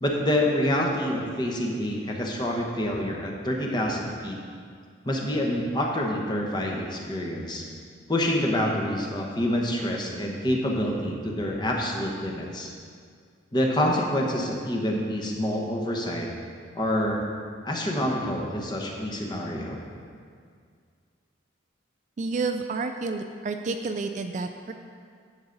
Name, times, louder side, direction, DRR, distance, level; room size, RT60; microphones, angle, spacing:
voice 1, 0.0-4.4 5.0-7.6 8.1-12.7 13.5-16.3 16.8-17.2 17.6-19.8, left 1 dB, 20° left, 0 dB, 1.0 m, -27 dB
voice 2, 22.2-24.7, right 4 dB, 35° right, 6 dB, 0.3 m, -30 dB
11.0 x 7.1 x 3.9 m, 2.1 s
head